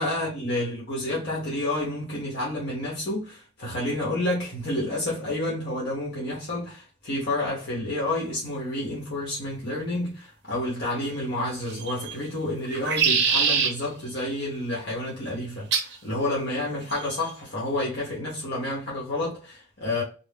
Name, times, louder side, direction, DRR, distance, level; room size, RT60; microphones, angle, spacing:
voice 1, 0.0-20.0, left 1 dB, 60° left, 1.0 m, -29 dB
sound 1, 11.7-12.1 12.7-13.7 15.7-16.0 16.9-17.3, right 6 dB, 60° right, 0.5 m, -24 dB
2.5 x 2.0 x 3.4 m
head